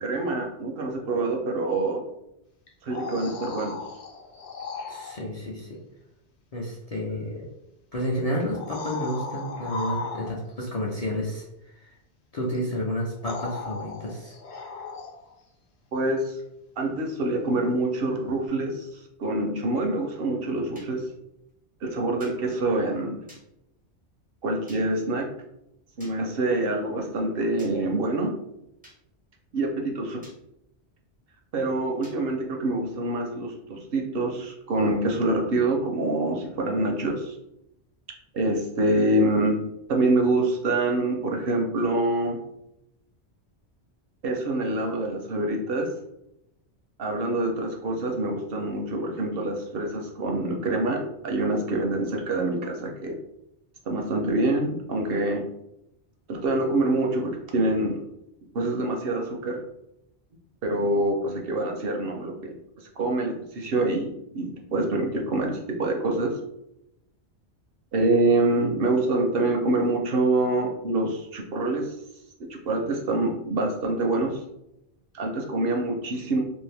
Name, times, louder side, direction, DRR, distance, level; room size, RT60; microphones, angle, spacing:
voice 1, 0.0-2.0 2.8-3.8 15.9-16.4 16.8-21.0 21.8-23.2 24.4-25.3 26.0-28.3 29.5-30.2 31.5-37.4 38.3-42.4 44.2-45.9 47.0-53.2 53.9-55.5 56.3-58.0 58.5-59.6 60.6-66.4 67.9-71.9 72.4-74.4 75.1-76.4, right 2 dB, 65° right, 2 dB, 0.7 m, -26 dB
sound 1, 2.7-5.2 7.1-7.2 8.5-10.6 12.5-12.6 13.2-15.3 18.4-18.5, left 4 dB, 75° left, 0.9 m, -36 dB
voice 2, 4.9-5.8 6.5-7.5 7.9-12.0 12.3-14.4, equal, 45° left, -4 dB, 0.5 m, -31 dB
sound 2, 20.8-20.9 22.2-22.4 23.3-23.4 24.7-24.8 26.0-26.2 27.6-27.7 28.8-29.0 30.2-30.4 32.0-32.2, equal, 10° right, 0.4 m, -50 dB
2.6 x 2.5 x 3.3 m, 0.85 s
omnidirectional pair, 1.1 m